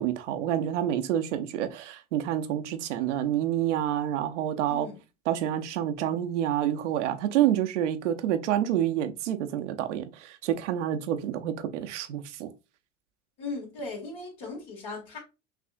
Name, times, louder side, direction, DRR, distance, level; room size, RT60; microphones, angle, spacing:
voice 1, 0.0-4.9 5.3-12.5, right 11 dB, 80° right, 0.7 m, -28 dB
voice 2, 4.7-5.0 7.4-7.5 13.4-15.2, left 3 dB, 70° left, 2.5 m, -38 dB
5.9 x 2.7 x 2.5 m
hypercardioid pair, 80°, 35 cm